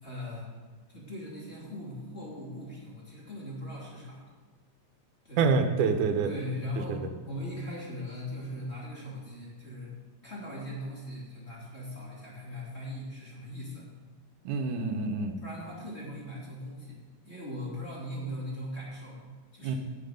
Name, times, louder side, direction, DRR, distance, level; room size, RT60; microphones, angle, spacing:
voice 1, 0.0-0.5 0.9-4.3 5.2-5.5 6.2-10.0 10.2-13.9 15.4-19.2 19.5-19.8, left 1 dB, 20° left, -5 dB, 3.0 m, -39 dB
voice 2, 5.4-6.3 14.5-15.4 19.6-19.8, right 5 dB, 85° right, 6 dB, 2.4 m, -26 dB
17.0 x 7.7 x 5.2 m, 1.4 s
omnidirectional pair, 3.5 m